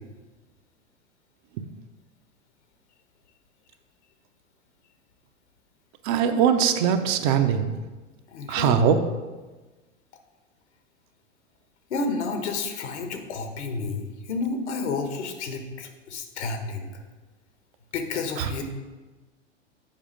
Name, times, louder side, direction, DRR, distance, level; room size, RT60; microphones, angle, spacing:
voice 1, 6.0-7.7 8.5-9.0 18.4-18.5, right 8 dB, 40° right, 7 dB, 0.6 m, -21 dB
voice 2, 8.3-9.0 11.9-16.9 17.9-18.6, left 4 dB, 65° left, 6 dB, 1.2 m, -30 dB
7.3 x 5.0 x 5.1 m, 1.2 s
figure-of-eight pair, 95°, 36 cm